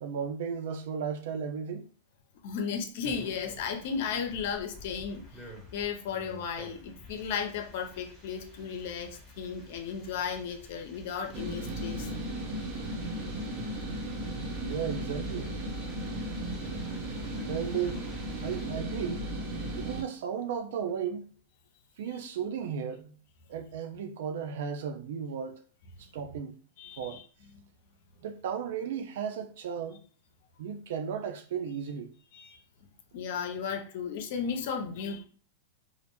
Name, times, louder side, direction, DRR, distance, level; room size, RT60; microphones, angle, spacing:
voice 1, 0.0-1.9 14.6-15.5 17.5-18.0 18.4-19.3 19.8-21.3 22.0-23.1 23.5-25.6 26.0-26.6 27.0-27.2 28.2-30.0 30.6-32.1, right 7 dB, 70° right, 0.3 m, -35 dB
voice 2, 2.4-5.2 5.7-12.2 26.8-27.2 32.3-32.6 33.1-35.2, left 6 dB, 65° left, 0.5 m, -35 dB
sound 1, 3.0-18.7, left 1 dB, 5° right, 1.0 m, -50 dB
sound 2, 11.3-20.0, right 1 dB, 40° right, 0.8 m, -35 dB
2.4 x 2.1 x 2.9 m
hypercardioid pair, 125°, 0 cm